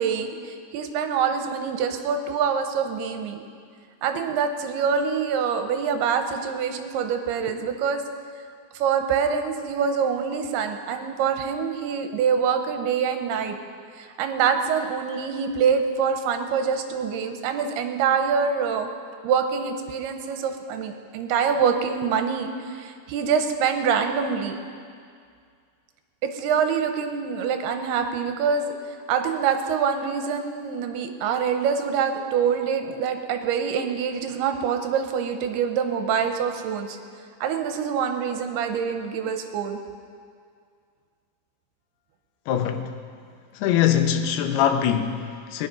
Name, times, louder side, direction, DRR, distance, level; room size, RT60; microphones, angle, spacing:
voice 1, 0.0-3.4 4.0-8.0 8.7-13.6 14.0-18.9 19.2-24.6 26.2-28.7 29.1-37.0 37.4-39.8, right 6 dB, 85° right, 3.0 m, -25 dB
voice 2, 42.5-42.9 43.5-45.7, left 9 dB, 85° left, 2.9 m, -23 dB
21.0 x 9.9 x 5.5 m
omnidirectional pair, 4.5 m